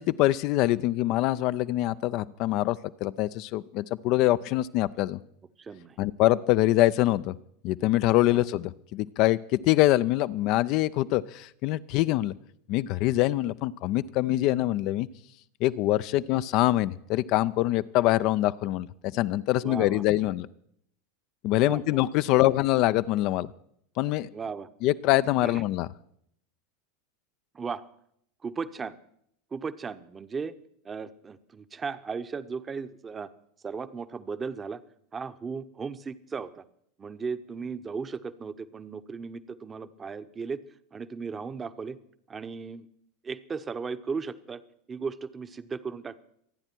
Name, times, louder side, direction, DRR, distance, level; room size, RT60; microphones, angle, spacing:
voice 1, 0.0-5.2 6.0-7.3 7.6-9.4 9.6-12.3 12.7-15.1 15.6-18.9 19.1-20.5 21.4-23.5 24.0-24.3 24.8-25.9, left 16 dB, 50° left, 15 dB, 0.5 m, -24 dB
voice 2, 5.6-6.0 8.3-8.4 16.1-16.2 19.5-20.0 21.6-22.1 22.3-22.4 24.3-24.7 25.4-25.6 27.5-27.9 28.4-29.0 29.5-30.5 30.8-33.3 33.6-34.8 35.1-36.6 37.0-40.6 40.9-42.0 42.3-42.9 43.2-44.6 44.9-46.2, right 5 dB, 25° right, 12 dB, 0.9 m, -36 dB
26.0 x 9.8 x 4.5 m, 0.71 s
figure-of-eight pair, 85°, 0 cm